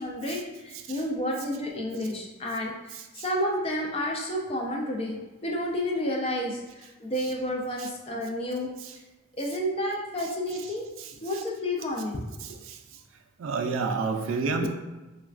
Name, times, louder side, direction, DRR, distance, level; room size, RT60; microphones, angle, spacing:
voice 1, 0.0-5.2 5.4-8.7 9.4-10.9 11.2-12.2 14.4-14.7, left 1 dB, 30° left, 0 dB, 0.4 m, -30 dB
voice 2, 2.9-3.2 7.8-7.9 8.8-8.9 11.0-11.1 11.3-11.4 12.4-12.8 13.4-14.7, right 4 dB, 65° right, 5 dB, 0.3 m, -30 dB
3.2 x 2.2 x 2.4 m, 1.1 s
head